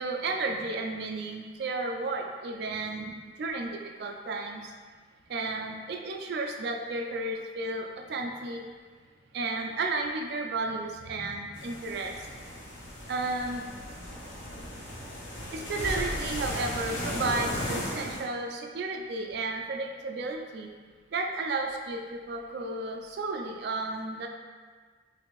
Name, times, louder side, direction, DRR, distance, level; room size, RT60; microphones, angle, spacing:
voice 1, 0.0-4.7 5.3-8.7 9.3-12.3 13.1-13.6 15.5-20.7 21.1-24.3, right 3 dB, 55° right, 3 dB, 0.3 m, -33 dB
sound 1, 11.6-18.2, equal, 75° left, 0.7 m, -36 dB
3.2 x 2.6 x 3.0 m, 1.5 s
head